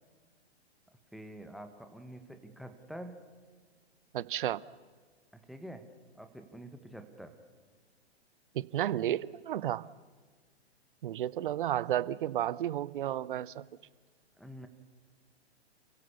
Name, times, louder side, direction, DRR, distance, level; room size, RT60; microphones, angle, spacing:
voice 1, 1.1-3.3 5.3-5.9 6.1-7.4 14.4-14.7, right 1 dB, ahead, 7 dB, 1.4 m, -47 dB
voice 2, 4.1-4.6 8.5-9.9 11.0-13.7, right 12 dB, 50° right, 21 dB, 0.7 m, -32 dB
29.0 x 16.5 x 7.0 m, 1.5 s
figure-of-eight pair, 120°, 33 cm